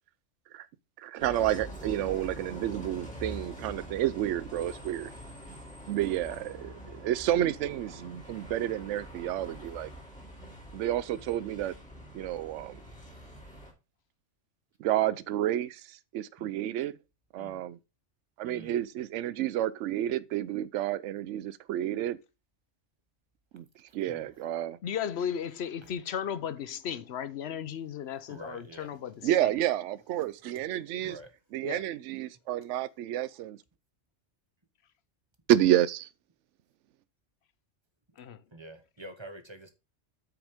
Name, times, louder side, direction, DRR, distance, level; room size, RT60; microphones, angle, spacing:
voice 1, 1.0-5.1 5.9-9.9 10.7-11.7 12.1-12.8 14.8-17.0 17.3-17.8 18.4-22.2 23.5-23.7 23.9-24.8 29.2-31.2 31.5-33.6 35.5-36.1, right 12 dB, 75° right, 0.9 m, -30 dB
Bus, 1.2-13.7, equal, 5° left, 2.7 m, -45 dB
voice 2, 18.4-18.8 24.1-24.3 25.8-25.9 28.3-28.9 30.5-30.6 31.0-31.3 38.5-39.7, right 1 dB, 25° right, 1.0 m, -47 dB
voice 3, 24.8-29.1 31.6-31.8 38.2-38.4, left 8 dB, 60° left, 0.9 m, -35 dB
8.7 x 6.1 x 3.5 m
omnidirectional pair, 1.3 m